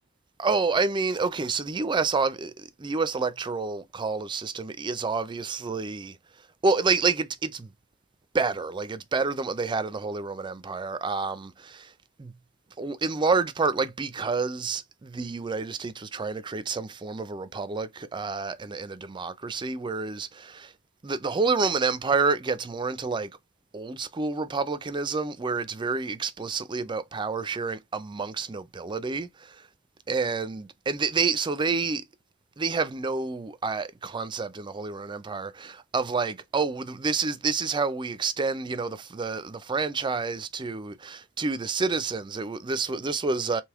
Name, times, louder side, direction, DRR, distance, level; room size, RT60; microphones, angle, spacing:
voice 1, 0.4-6.2 6.6-7.7 8.3-11.9 12.2-12.4 12.8-20.7 21.0-23.3 23.7-29.7 30.1-32.0 32.6-43.6, right 4 dB, 20° right, 0.4 m, -28 dB
3.4 x 2.6 x 3.5 m
head